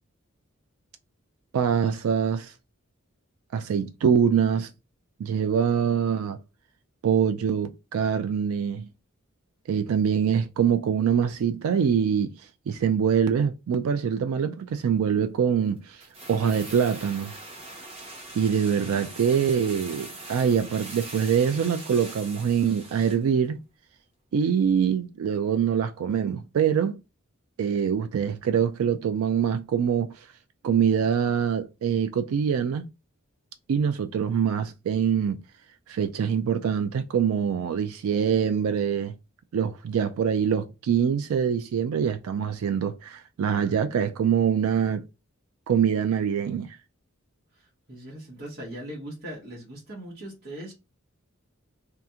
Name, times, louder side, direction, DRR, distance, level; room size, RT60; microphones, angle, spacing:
voice 1, 1.5-2.5 3.5-4.7 5.2-6.4 7.0-8.9 9.7-12.3 12.7-16.0 16.3-17.3 18.3-23.6 24.3-27.0 27.6-30.1 30.6-32.9 33.7-35.4 35.9-39.2 39.5-45.0 45.7-46.8, right 7 dB, 85° right, 0.3 m, -24 dB
sound 1, 16.0-23.3 23.6-23.7, right 2 dB, 30° right, 0.9 m, -42 dB
voice 2, 47.5-50.7, right 1 dB, 55° right, 1.2 m, -40 dB
2.8 x 2.4 x 3.5 m
head